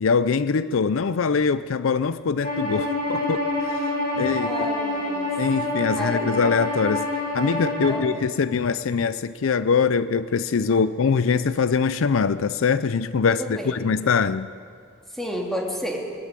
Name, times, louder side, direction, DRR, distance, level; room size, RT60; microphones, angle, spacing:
voice 1, 0.0-3.8 4.2-4.5 5.4-7.1 7.3-14.5, left 5 dB, 70° left, 14 dB, 0.5 m, -23 dB
Bowed string instrument, 2.4-8.0, left 1 dB, 45° left, 7.8 m, -27 dB
voice 2, 4.4-5.3 6.0-6.5 7.9-8.2 10.7-10.8 11.1-11.2 13.4-13.9 15.1-16.0, equal, ahead, -1 dB, 2.8 m, -32 dB
20.0 x 15.0 x 9.7 m, 2.4 s
head